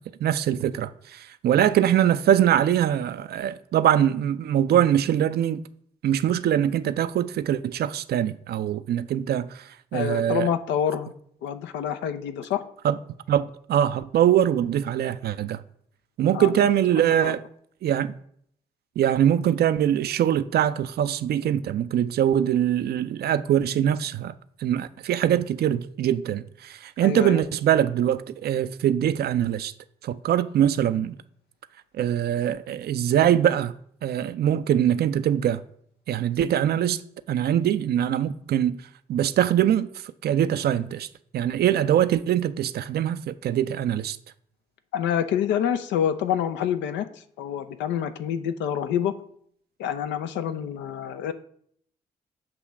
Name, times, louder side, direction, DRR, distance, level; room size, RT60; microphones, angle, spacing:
voice 1, 0.2-5.6 6.0-10.5 12.8-13.0 13.3-15.6 16.2-17.4 17.8-18.1 19.0-24.3 24.6-29.7 30.0-31.1 32.0-33.7 34.0-35.6 36.1-37.0 37.3-38.8 39.1-39.9 40.2-41.1 41.3-44.2, right 10 dB, 55° right, 0.5 m, -23 dB
voice 2, 9.9-11.1 11.4-12.6 16.3-16.5 17.2-17.3 27.0-27.4 44.9-49.1 49.8-51.3, left 9 dB, 70° left, 0.6 m, -27 dB
7.5 x 3.0 x 6.2 m
hypercardioid pair, 40°, 19 cm